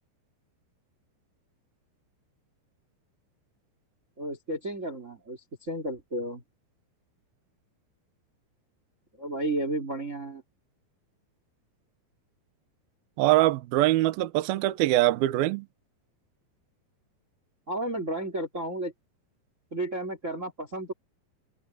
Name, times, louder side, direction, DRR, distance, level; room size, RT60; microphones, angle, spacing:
voice 1, 4.2-6.4 9.2-10.4 17.7-18.9 19.7-20.9, right 1 dB, 20° right, 2.9 m, -32 dB
voice 2, 13.2-15.7, right 16 dB, 80° right, 2.3 m, -23 dB
omnidirectional pair, 5.3 m